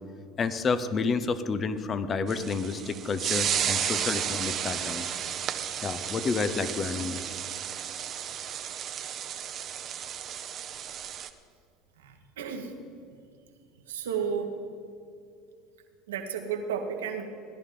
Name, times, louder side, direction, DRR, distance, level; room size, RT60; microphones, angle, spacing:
voice 1, 0.4-5.2 5.8-7.3, left 4 dB, 35° left, 13 dB, 0.8 m, -30 dB
sound 1, 2.3-11.3, right 9 dB, 45° right, 0.8 m, -33 dB
voice 2, 12.0-12.7 13.9-14.5 16.1-17.3, right 7 dB, 90° right, 4 dB, 1.4 m, -32 dB
16.5 x 11.0 x 3.8 m, 2.4 s
hypercardioid pair, 85°, 0 cm